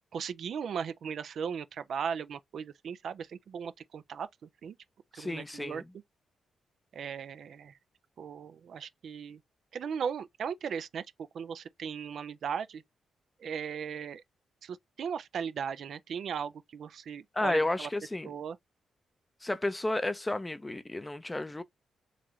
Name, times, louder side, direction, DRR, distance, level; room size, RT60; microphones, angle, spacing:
voice 1, 0.1-4.7 5.2-5.8 6.9-7.8 8.2-9.4 9.7-11.1 11.3-12.8 13.4-14.2 14.6-17.9 18.2-18.6, right 7 dB, 70° right, 0.4 m, -37 dB
voice 2, 5.1-5.9 17.3-18.3 19.4-21.6, left 2 dB, 15° left, 0.6 m, -32 dB
3.9 x 2.9 x 3.1 m
cardioid pair, 80°, 0 cm